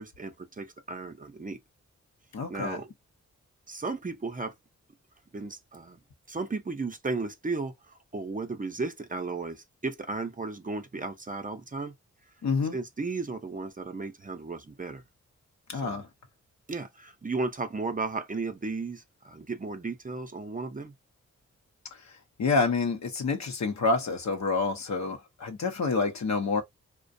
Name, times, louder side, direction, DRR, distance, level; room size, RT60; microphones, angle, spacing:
voice 1, 0.0-1.6 2.5-2.9 3.7-4.5 5.3-6.0 6.3-11.9 12.7-15.0 15.7-16.0 16.7-20.9, right 3 dB, 25° right, 0.6 m, -35 dB
voice 2, 2.3-2.8 12.4-12.8 15.7-16.1 21.9-22.1 22.4-26.6, left 4 dB, 65° left, 0.8 m, -28 dB
2.4 x 2.2 x 2.6 m
cardioid pair, 45°, 30 cm